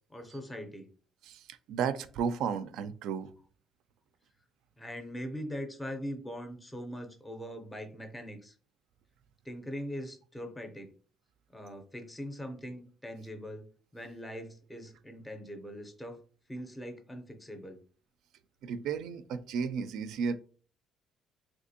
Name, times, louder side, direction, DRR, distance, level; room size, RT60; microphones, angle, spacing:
voice 1, 0.1-0.9 4.8-8.5 9.4-10.9 11.5-13.7 13.9-16.2 16.5-17.8, equal, 5° left, 5 dB, 0.5 m, -41 dB
voice 2, 1.7-3.3 18.6-20.4, right 6 dB, 70° right, 12 dB, 0.3 m, -33 dB
3.4 x 2.8 x 2.7 m, 0.40 s
cardioid pair, 160°, 0 cm